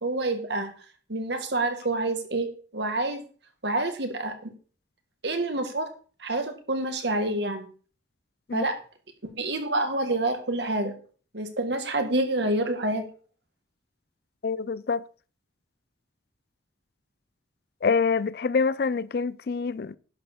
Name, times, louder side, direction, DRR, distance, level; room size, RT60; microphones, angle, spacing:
voice 1, 0.0-0.7 1.1-2.5 2.7-3.2 3.6-4.5 5.2-5.9 6.2-7.7 8.5-8.8 9.3-10.9 11.3-13.0, right 2 dB, 65° right, 2.0 m, -27 dB
voice 2, 14.4-15.0 17.8-20.0, left 5 dB, 55° left, 0.4 m, -26 dB
11.0 x 4.7 x 7.3 m
head